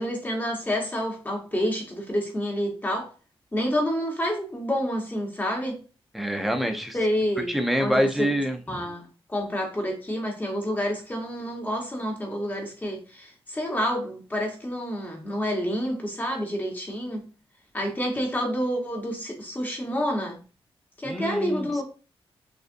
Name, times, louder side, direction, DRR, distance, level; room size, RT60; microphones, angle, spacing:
voice 1, 0.0-3.1 3.5-5.8 6.9-8.3 8.7-17.2 17.7-20.4 21.0-21.8, equal, 20° left, 1.2 m, -28 dB
voice 2, 6.1-7.0 7.5-8.8 21.1-21.8, equal, ahead, 0.5 m, -26 dB
6.3 x 2.5 x 2.6 m
wide cardioid pair, 135°, 10 cm